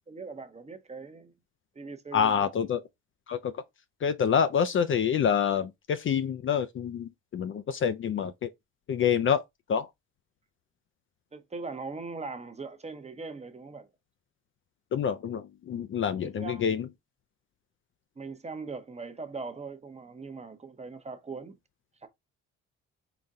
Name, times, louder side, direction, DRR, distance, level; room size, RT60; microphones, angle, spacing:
voice 1, 0.1-1.3 1.7-2.5 11.3-13.9 16.2-16.6 18.2-21.6 22.0-22.1, right 4 dB, 20° right, 0.7 m, -40 dB
voice 2, 2.1-2.8 3.3-3.5 4.0-8.5 8.9-9.4 9.7-9.9 14.9-16.9, left 7 dB, 45° left, 0.4 m, -27 dB
4.0 x 2.1 x 3.6 m
cardioid pair, 90°, 30 cm